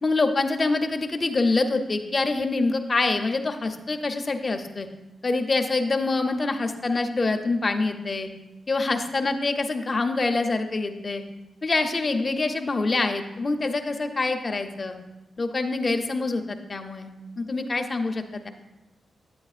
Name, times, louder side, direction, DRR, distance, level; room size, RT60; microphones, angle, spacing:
voice 1, 0.0-4.9 5.2-8.3 8.7-11.2 11.6-14.9 15.4-17.1 17.4-18.5, left 3 dB, 35° left, 5 dB, 0.7 m, -25 dB
8.6 x 8.6 x 2.4 m, 0.99 s
cardioid pair, 95°, 0 cm